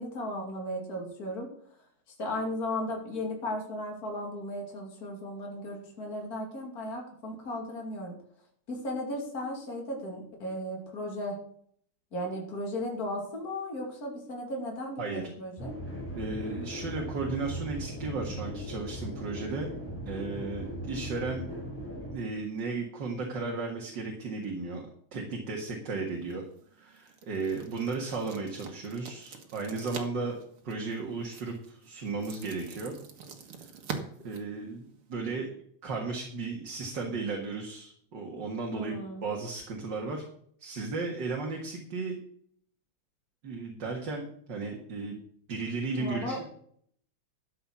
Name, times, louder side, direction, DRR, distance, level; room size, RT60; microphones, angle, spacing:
voice 1, 0.0-1.5 2.2-8.1 8.7-11.4 12.1-15.7 38.7-39.2 46.0-46.4, left 1 dB, 45° left, 0 dB, 3.0 m, -35 dB
sound 1, 15.6-22.1, equal, 5° left, 4.7 m, -38 dB
voice 2, 16.2-19.7 20.1-21.4 22.1-24.8 25.1-26.4 26.8-30.4 30.6-32.9 34.2-34.8 35.1-35.5 35.8-40.2 40.6-42.2 43.4-45.2 45.5-46.4, right 3 dB, 55° right, 0 dB, 2.4 m, -35 dB
sound 2, 26.1-35.2, right 6 dB, 85° right, 2.5 m, -45 dB
12.5 x 7.3 x 6.1 m, 0.63 s
omnidirectional pair, 2.3 m